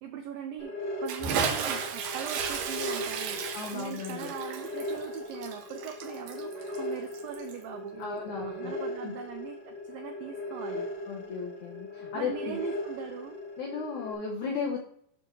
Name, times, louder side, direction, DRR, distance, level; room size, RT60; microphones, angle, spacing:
voice 1, 0.0-3.4 3.7-10.9 12.1-13.4, right 9 dB, 90° right, 5 dB, 2.0 m, -41 dB
sound 1, 0.6-14.1, left 1 dB, 55° left, 1.1 m, -38 dB
Bathtub (filling or washing) / Splash splatter, 1.1-7.6, right 6 dB, 70° right, 2.3 m, -34 dB
voice 2, 3.5-4.3 8.0-9.1 11.1-12.6 13.6-14.8, left 5 dB, 80° left, -1 dB, 1.7 m, -35 dB
9.0 x 6.2 x 3.1 m, 0.66 s
omnidirectional pair, 4.8 m